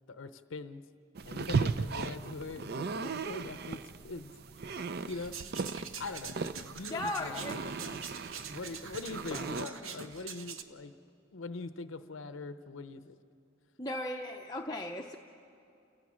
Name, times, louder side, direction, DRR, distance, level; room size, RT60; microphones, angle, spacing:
voice 1, 0.1-0.8 1.2-4.3 5.1-5.5 6.0-6.4 6.7-8.0 8.5-10.9 11.3-13.2, left 3 dB, 65° left, 11 dB, 0.6 m, -42 dB
sound 1, 1.2-9.7, right 4 dB, 50° right, 0.5 m, -37 dB
voice 2, 2.8-3.1 6.8-7.6 9.3-9.9 13.8-15.2, left 1 dB, 20° left, 1 dB, 0.6 m, -38 dB
sound 2, 5.1-10.6, right 6 dB, 80° right, 1.0 m, -45 dB
29.5 x 15.5 x 6.2 m, 2.7 s
head